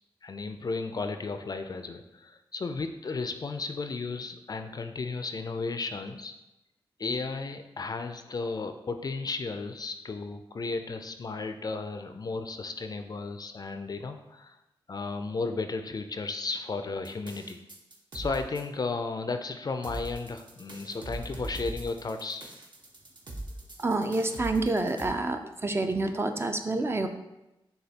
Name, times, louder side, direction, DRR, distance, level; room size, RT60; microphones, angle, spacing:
voice 1, 0.2-6.3 7.0-14.6 14.9-17.6 18.1-22.5, left 3 dB, 45° left, 7 dB, 0.4 m, -34 dB
sound 1, 17.0-18.6 19.8-25.1, right 1 dB, 50° right, 0.9 m, -40 dB
voice 2, 23.8-27.1, right 2 dB, 25° right, 7 dB, 0.4 m, -28 dB
6.5 x 2.3 x 2.8 m, 0.95 s
cardioid pair, 60°, 10 cm